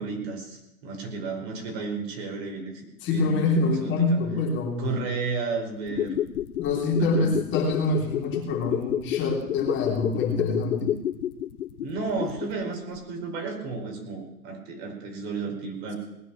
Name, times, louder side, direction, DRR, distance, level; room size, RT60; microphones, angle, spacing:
voice 1, 0.0-2.8 3.1-3.5 3.8-4.2 4.8-6.2 7.0-7.4 11.8-16.0, right 4 dB, 45° right, 2 dB, 5.2 m, -33 dB
voice 2, 3.0-4.9 6.6-10.9, left 3 dB, 25° left, 0 dB, 3.5 m, -25 dB
sound 1, 5.8-12.7 13.0-13.1, left 11 dB, 70° left, 0.8 m, -30 dB
19.5 x 9.3 x 7.2 m, 0.90 s
hypercardioid pair, 130°, 46 cm